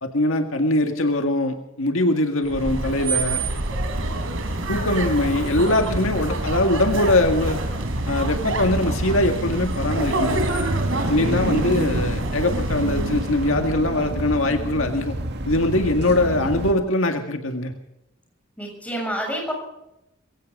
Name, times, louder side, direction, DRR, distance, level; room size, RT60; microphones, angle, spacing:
voice 1, 0.0-3.4 4.7-7.6 8.1-10.5 11.1-15.2 15.5-17.7, left 1 dB, 80° left, 5 dB, 1.9 m, -22 dB
sound 1, 2.4-13.6, right 2 dB, 80° right, 3.5 m, -28 dB
sound 2, 3.9-16.7, right 1 dB, 60° right, 1.7 m, -29 dB
voice 2, 18.6-19.5, equal, 5° left, 0 dB, 7.0 m, -28 dB
22.5 x 17.0 x 3.8 m, 0.86 s
head